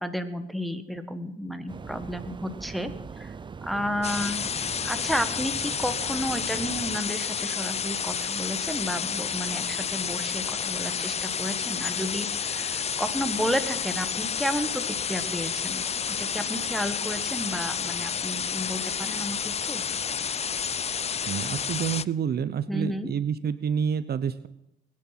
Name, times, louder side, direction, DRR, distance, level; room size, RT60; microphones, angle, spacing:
voice 1, 0.0-3.3 3.6-4.4 4.8-19.8 22.7-23.1, equal, ahead, 7 dB, 1.6 m, -32 dB
sound 1, 1.7-7.0, right 5 dB, 25° right, 0.4 m, -40 dB
sound 2, 4.0-22.0, left 7 dB, 30° left, 0.5 m, -30 dB
voice 2, 21.3-24.5, right 7 dB, 55° right, 14 dB, 0.8 m, -28 dB
21.0 x 9.9 x 5.9 m, 0.86 s
cardioid pair, 90°, 20 cm